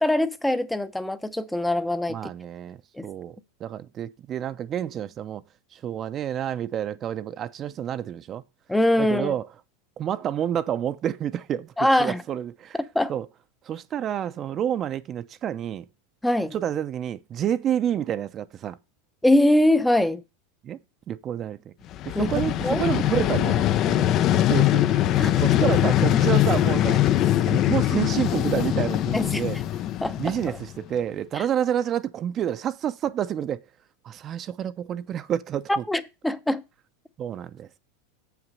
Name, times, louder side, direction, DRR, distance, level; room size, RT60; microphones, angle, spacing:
voice 1, 0.0-2.2 2.9-3.0 8.7-9.3 11.8-12.2 12.8-13.1 16.2-16.5 19.2-20.2 22.2-22.3 22.6-22.8 25.2-25.3 26.1-26.2 29.1-29.4 30.0-30.2 35.7-36.6, left 1 dB, 5° left, 0.7 m, -22 dB
voice 2, 2.1-2.8 3.0-5.4 5.7-8.4 9.0-9.5 10.0-11.7 12.0-12.8 13.1-13.3 13.6-15.9 16.5-18.8 20.6-20.8 21.1-21.7 22.0-29.6 30.2-33.6 34.0-35.8 37.2-37.8, right 10 dB, 35° right, 0.6 m, -29 dB
Vehicle, 21.9-30.9, left 12 dB, 45° left, 0.5 m, -22 dB
7.2 x 5.9 x 5.4 m
hypercardioid pair, 110°, 0 cm